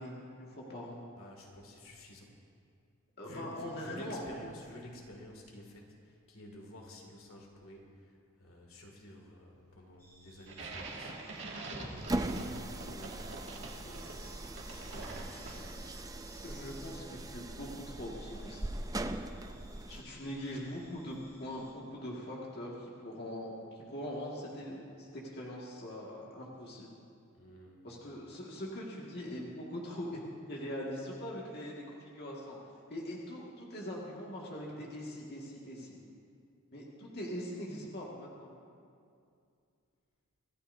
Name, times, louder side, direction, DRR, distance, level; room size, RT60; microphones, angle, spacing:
voice 1, 0.0-1.0 3.2-4.2 16.4-18.6 19.9-26.9 27.8-32.6 32.9-36.0 36.7-38.5, equal, 50° left, -4 dB, 2.0 m, -42 dB
voice 2, 1.2-2.4 3.2-14.2 14.7-15.8 27.3-27.8, equal, 75° left, 0 dB, 2.3 m, -52 dB
sound 1, 10.0-21.7, equal, 15° left, 3.4 m, -59 dB
sound 2, 10.5-16.0, right 2 dB, 60° right, 2.2 m, -45 dB
sound 3, 12.0-20.1, right 1 dB, 15° right, 0.5 m, -40 dB
26.0 x 14.5 x 2.7 m, 2.4 s
head